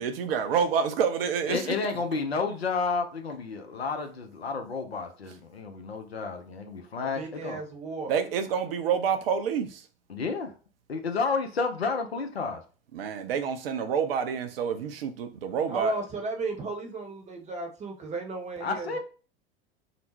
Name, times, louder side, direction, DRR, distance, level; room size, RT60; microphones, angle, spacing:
voice 1, 0.0-1.6 8.1-9.8 12.9-16.0, right 7 dB, 70° right, 0.5 m, -28 dB
voice 2, 1.5-7.6 10.1-10.5 10.9-12.6 18.6-19.0, left 4 dB, 85° left, 0.5 m, -31 dB
voice 3, 7.0-8.1 15.7-19.0, right 3 dB, 20° right, 0.7 m, -35 dB
2.5 x 2.0 x 3.0 m
figure-of-eight pair, 80°, 31 cm